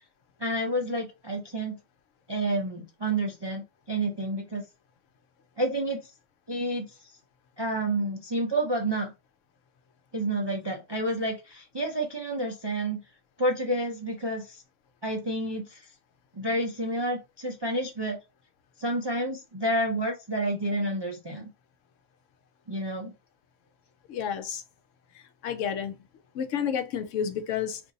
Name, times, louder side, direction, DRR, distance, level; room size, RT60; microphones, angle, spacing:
voice 1, 0.4-1.8 2.3-4.6 5.6-6.0 6.5-6.9 7.6-9.1 10.1-13.0 13.4-14.6 15.0-15.8 16.3-18.2 18.8-21.5 22.7-23.1, right 1 dB, 40° right, 0.3 m, -29 dB
voice 2, 24.1-24.6 25.4-26.0 26.3-27.8, left 8 dB, 75° left, 0.9 m, -30 dB
2.6 x 2.5 x 3.8 m
omnidirectional pair, 1.4 m